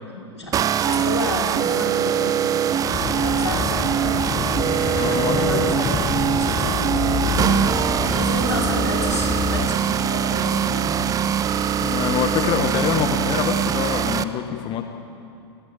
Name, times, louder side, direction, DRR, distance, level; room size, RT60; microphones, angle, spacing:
voice 1, 0.1-4.1 4.8-11.0, left 1 dB, 85° left, -1 dB, 5.3 m, -31 dB
sound 1, 0.5-14.2, right 8 dB, 25° right, 0.9 m, -22 dB
sound 2, 2.9-9.7, left 6 dB, 15° left, 1.3 m, -27 dB
voice 2, 5.0-5.4 11.8-14.8, left 9 dB, 35° left, 6 dB, 1.7 m, -25 dB
28.5 x 18.0 x 9.0 m, 2.6 s
figure-of-eight pair, 85°, 14 cm